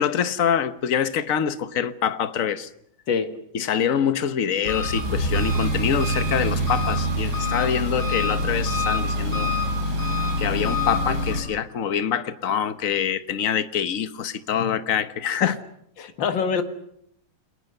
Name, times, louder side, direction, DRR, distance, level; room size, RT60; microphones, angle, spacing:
voice 1, 0.0-2.7 3.5-9.5 10.4-15.6, left 8 dB, 45° left, 1.3 m, -25 dB
Engine, 4.6-11.4, equal, 75° right, 6.8 m, -25 dB
voice 2, 16.0-16.6, left 6 dB, 65° left, 2.3 m, -24 dB
29.5 x 22.0 x 6.7 m
omnidirectional pair, 2.2 m